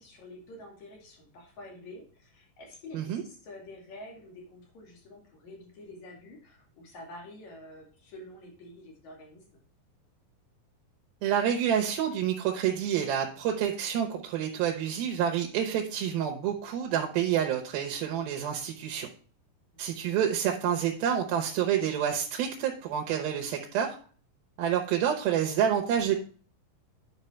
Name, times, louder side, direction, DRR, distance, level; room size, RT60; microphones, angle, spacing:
voice 1, 0.0-9.6 19.7-19.8, left 1 dB, 55° left, 0 dB, 3.7 m, -48 dB
voice 2, 11.2-19.1 19.8-24.0 24.6-26.2, right 9 dB, 85° right, 2 dB, 2.8 m, -28 dB
9.7 x 5.7 x 4.5 m, 0.41 s
omnidirectional pair, 4.2 m